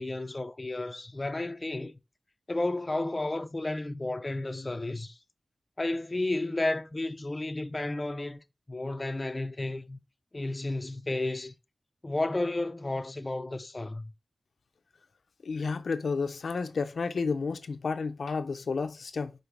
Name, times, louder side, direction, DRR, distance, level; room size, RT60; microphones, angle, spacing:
voice 1, 0.0-1.9 2.5-5.2 5.8-10.0 10.3-11.5 12.0-14.1, left 2 dB, 30° left, 0.5 m, -32 dB
voice 2, 15.4-19.3, left 4 dB, 80° left, 0.5 m, -31 dB
5.3 x 4.0 x 4.5 m
wide cardioid pair, 80°, 0 cm